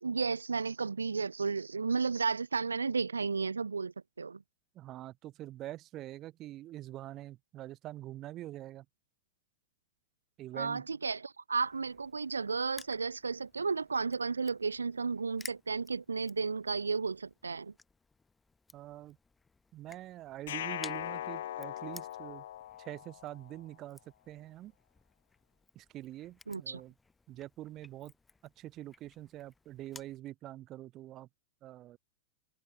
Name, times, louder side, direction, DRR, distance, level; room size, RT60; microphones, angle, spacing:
voice 1, 0.0-4.4 10.5-17.7 26.5-26.8, right 4 dB, 75° right, 0.5 m, -33 dB
voice 2, 4.7-8.9 10.4-10.9 18.7-19.2 19.7-22.4 22.8-24.0 24.3-24.7 25.7-26.9 27.3-28.1 28.4-31.3 31.6-32.0, right 14 dB, 35° right, 0.7 m, -45 dB
Crushing, 11.6-30.2, left 3 dB, 10° left, 1.1 m, -56 dB
sound 1, 20.5-23.5, left 12 dB, 60° left, 1.1 m, -40 dB
figure-of-eight pair, 90°, 0 cm